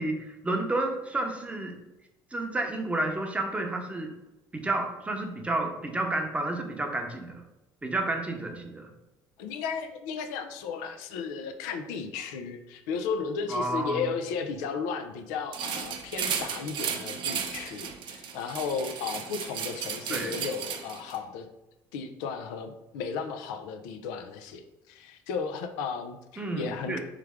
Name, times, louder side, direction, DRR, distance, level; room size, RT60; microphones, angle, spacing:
voice 1, 0.0-1.8 2.3-4.1 4.5-7.4 7.8-8.9 13.5-14.1 20.1-20.4 26.4-27.0, right 2 dB, 15° right, 3 dB, 0.7 m, -31 dB
voice 2, 9.4-21.5 21.9-27.0, left 5 dB, 85° left, 7 dB, 0.4 m, -34 dB
sound 1, 15.5-21.2, right 7 dB, 60° right, 0.6 m, -34 dB
3.4 x 3.2 x 3.5 m, 0.98 s
supercardioid pair, 90°, 9 cm